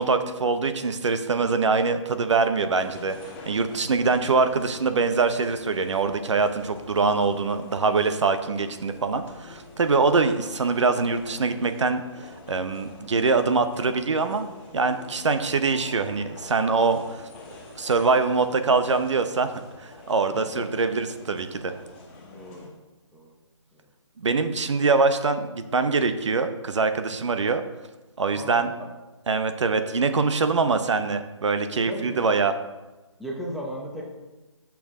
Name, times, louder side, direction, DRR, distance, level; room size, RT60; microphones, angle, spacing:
voice 1, 0.0-3.2 3.5-14.5 14.7-17.3 17.8-21.7 24.2-27.6 28.2-28.7 29.3-32.5, right 4 dB, 70° right, 9 dB, 0.8 m, -24 dB
sound 1, 2.8-22.7, left 2 dB, 20° left, 1.8 m, -46 dB
voice 2, 20.3-20.6 22.1-22.7 23.1-23.4 23.7-23.9 28.3-28.5 31.9-32.2 33.2-34.0, equal, ahead, -3 dB, 0.7 m, -36 dB
8.4 x 6.0 x 3.6 m, 1.1 s
hypercardioid pair, 155°, 16 cm